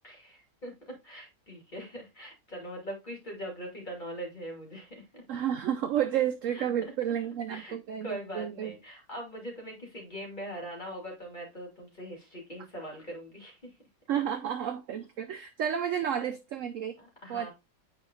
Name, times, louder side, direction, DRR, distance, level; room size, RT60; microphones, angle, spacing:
voice 1, 0.0-5.2 6.5-6.6 7.5-7.7 8.0-13.6 16.2-16.3 17.0-17.5, equal, 25° left, 2.5 m, -42 dB
voice 2, 5.3-8.7 14.1-16.9 17.3-17.5, right 9 dB, 75° right, 0.7 m, -31 dB
8.9 x 4.8 x 2.4 m
omnidirectional pair, 1.9 m